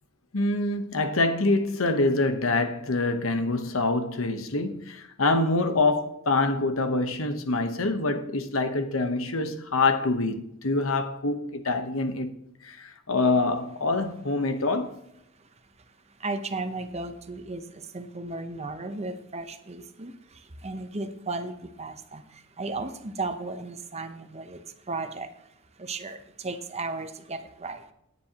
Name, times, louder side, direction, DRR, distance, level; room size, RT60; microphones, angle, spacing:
voice 1, 0.3-12.3 12.6-14.9, left 2 dB, 75° left, 1.1 m, -25 dB
voice 2, 15.4-27.9, right 3 dB, 30° right, 0.9 m, -36 dB
17.0 x 9.5 x 3.0 m
head